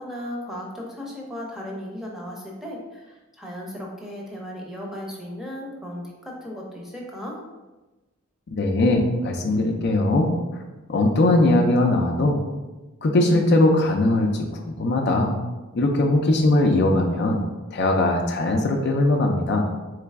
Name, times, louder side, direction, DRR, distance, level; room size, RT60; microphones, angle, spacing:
voice 1, 0.0-7.4, equal, ahead, -2 dB, 0.6 m, -36 dB
voice 2, 8.5-10.3 10.9-12.4 13.0-15.3 15.7-17.4 17.7-19.7, left 2 dB, 50° left, 2 dB, 0.4 m, -20 dB
3.9 x 3.2 x 3.5 m, 1.1 s
head